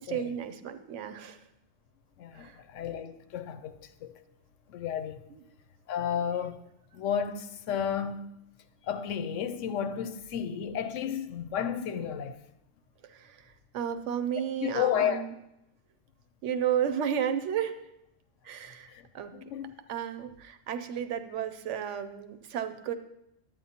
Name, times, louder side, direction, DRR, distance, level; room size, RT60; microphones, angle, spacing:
voice 1, 0.0-1.4 2.3-2.6 5.3-5.4 13.0-15.3 16.4-17.8 18.4-19.3 19.9-22.9, right 9 dB, 75° right, 1.0 m, -33 dB
voice 2, 2.2-4.2 4.7-5.2 5.9-6.6 6.9-8.4 8.8-12.4 14.6-15.2 18.9-19.1 19.3-19.7, left 8 dB, 85° left, 1.0 m, -32 dB
11.5 x 8.7 x 2.8 m
omnidirectional pair, 1.3 m